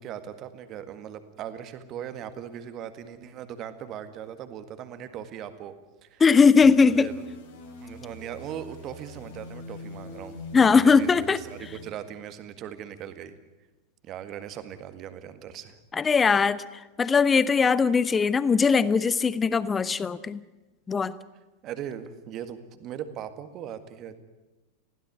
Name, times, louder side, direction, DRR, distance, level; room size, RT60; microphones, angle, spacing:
voice 1, 0.0-5.7 6.0-6.2 6.9-7.2 7.8-10.4 10.7-13.3 14.0-15.8 21.6-24.2, right 9 dB, 35° right, 10 dB, 1.8 m, -39 dB
voice 2, 6.2-7.1 10.5-11.4 15.9-16.6 17.0-20.4 20.9-21.1, left 5 dB, 15° left, 18 dB, 0.9 m, -20 dB
sound 1, 6.6-11.9, left 1 dB, 60° left, 5.9 m, -43 dB
21.0 x 16.0 x 10.0 m, 1.1 s
figure-of-eight pair, 90°, 0 cm